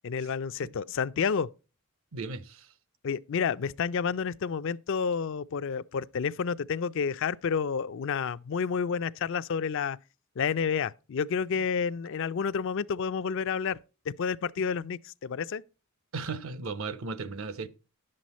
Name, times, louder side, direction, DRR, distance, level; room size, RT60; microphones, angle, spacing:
voice 1, 0.0-1.5 3.0-10.0 10.4-13.8 14.2-15.6, left 6 dB, 60° left, 0.4 m, -30 dB
voice 2, 2.1-2.7 11.6-11.7 16.1-17.7, right 4 dB, 65° right, 0.7 m, -36 dB
11.0 x 7.7 x 4.1 m
head